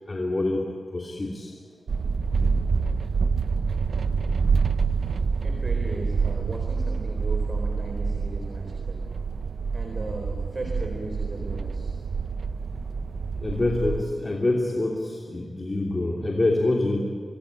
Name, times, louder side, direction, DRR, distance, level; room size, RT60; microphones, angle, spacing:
voice 1, 0.1-1.5 13.4-17.0, left 2 dB, 35° left, -1 dB, 3.0 m, -26 dB
sound 1, 1.9-14.0, right 5 dB, 80° right, 0.8 m, -27 dB
Bass guitar, 4.1-10.3, right 2 dB, 15° right, 5.9 m, -44 dB
voice 2, 5.4-9.0 9.7-12.0, right 2 dB, 40° right, 2 dB, 4.2 m, -37 dB
26.5 x 20.0 x 9.1 m, 2.2 s
wide cardioid pair, 95°, 0 cm